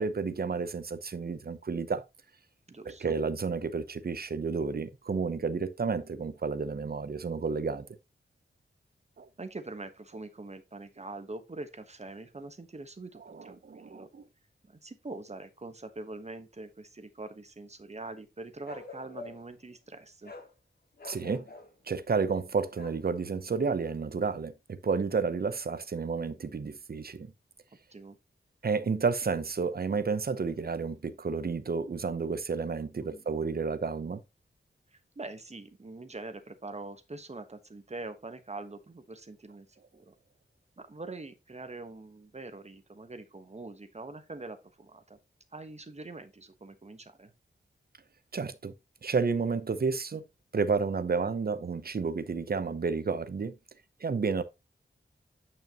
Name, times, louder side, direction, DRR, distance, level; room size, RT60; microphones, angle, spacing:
voice 1, 0.0-2.0 2.9-7.9 9.2-9.3 13.3-14.2 21.0-21.5 21.9-27.3 28.6-34.2 48.3-48.7 49.0-50.2 50.5-53.5 54.0-54.4, right 5 dB, 50° right, 0.8 m, -31 dB
voice 2, 2.7-3.1 9.4-14.1 14.6-20.3 27.9-28.2 33.0-33.2 34.9-40.1 40.8-45.2 45.5-47.3, right 2 dB, 35° right, 1.2 m, -44 dB
Bark, 18.6-19.5 20.2-20.5 21.0-21.7 22.7-23.0, left 3 dB, 55° left, 1.8 m, -46 dB
9.2 x 5.6 x 3.0 m
wide cardioid pair, 90°, 20 cm